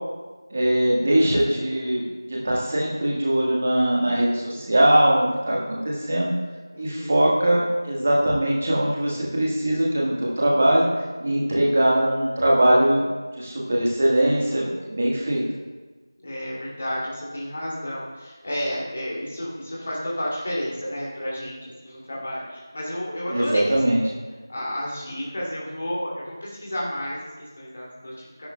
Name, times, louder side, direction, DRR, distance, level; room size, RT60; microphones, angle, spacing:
voice 1, 0.5-6.3 6.8-10.9 11.2-13.0 13.3-15.4 23.3-24.0, right 1 dB, 20° right, -3 dB, 1.4 m, -21 dB
voice 2, 5.3-5.8 6.7-7.3 11.4-11.9 16.2-24.1 24.5-28.5, equal, 20° left, -6 dB, 2.4 m, -32 dB
21.0 x 11.0 x 2.2 m, 1.3 s
figure-of-eight pair, 175°, 2 cm